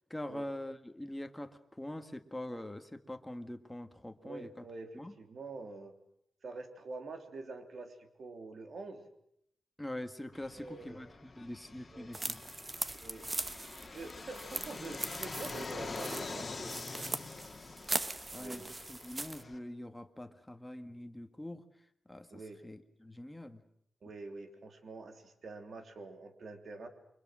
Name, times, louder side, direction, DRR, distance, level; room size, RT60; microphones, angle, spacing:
voice 1, 0.1-4.5 4.9-5.1 9.8-12.4 14.8-14.9 15.6-15.9 18.3-21.7 22.1-23.6, left 1 dB, 10° left, 7 dB, 1.8 m, -44 dB
voice 2, 4.2-5.9 6.4-9.0 10.5-11.0 11.9-12.1 13.0-13.3 13.9-17.1 18.4-18.8 22.3-22.6 24.0-26.9, right 3 dB, 55° right, 6 dB, 3.2 m, -46 dB
Fixed-wing aircraft airplane, 10.3-19.6, left 3 dB, 30° left, 2.5 m, -45 dB
sound 1, 12.1-19.4, right 2 dB, 20° right, 1.0 m, -40 dB
29.0 x 25.0 x 6.3 m, 0.72 s
wide cardioid pair, 120°, 0 cm